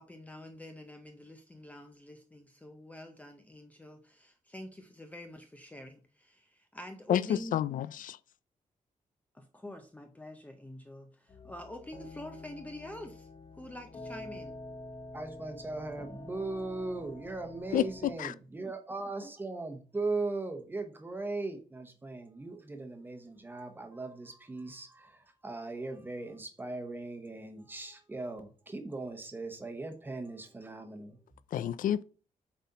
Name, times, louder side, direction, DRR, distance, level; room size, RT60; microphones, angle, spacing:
voice 1, 0.0-7.6 9.3-14.6, left 1 dB, 10° left, 0.6 m, -47 dB
voice 2, 7.5-8.2 17.7-17.8 18.2-18.3 31.5-32.0, left 11 dB, 75° left, 0.4 m, -29 dB
sound 1, 11.3-18.2, left 2 dB, 30° left, 0.9 m, -47 dB
voice 3, 15.1-31.2, right 3 dB, 15° right, 1.0 m, -39 dB
7.6 x 4.1 x 4.1 m
wide cardioid pair, 175°, 14 cm